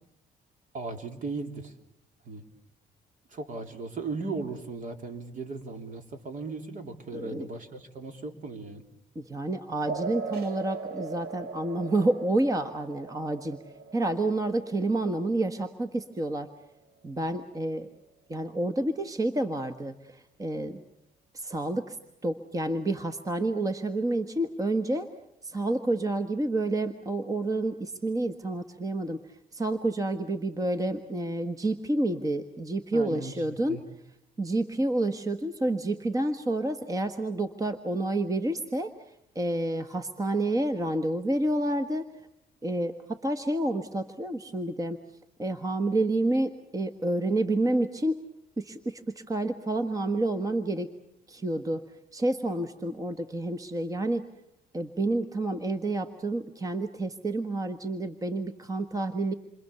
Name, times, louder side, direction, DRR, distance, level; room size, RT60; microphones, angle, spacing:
voice 1, 0.7-1.7 2.2-2.4 3.3-8.8 32.9-33.8, right 3 dB, 55° right, 6 dB, 3.3 m, -37 dB
voice 2, 7.1-7.5 9.1-13.6 13.9-16.5 17.0-18.0 18.3-20.8 21.3-22.0 22.2-25.1 25.4-33.8 34.4-38.9 39.3-42.1 42.6-45.0 45.4-48.2 48.6-50.9 51.3-51.8 52.1-54.3 54.7-59.3, right 2 dB, 20° right, 8 dB, 1.5 m, -29 dB
sound 1, 9.9-16.9, right 4 dB, 75° right, 1.4 m, -40 dB
28.5 x 25.0 x 7.0 m, 0.78 s
cardioid pair, 105°, 16 cm